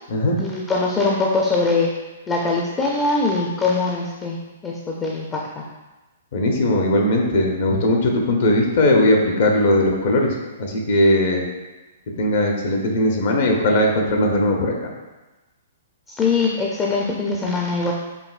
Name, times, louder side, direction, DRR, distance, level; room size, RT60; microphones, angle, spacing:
voice 1, 0.4-1.9 2.3-4.4 4.6-5.6 16.2-17.9, left 3 dB, 20° left, -2 dB, 0.4 m, -22 dB
voice 2, 6.3-11.4 12.2-14.7, left 1 dB, 60° left, 1 dB, 0.8 m, -19 dB
5.2 x 2.6 x 2.4 m, 1.1 s
hypercardioid pair, 130°, 0 cm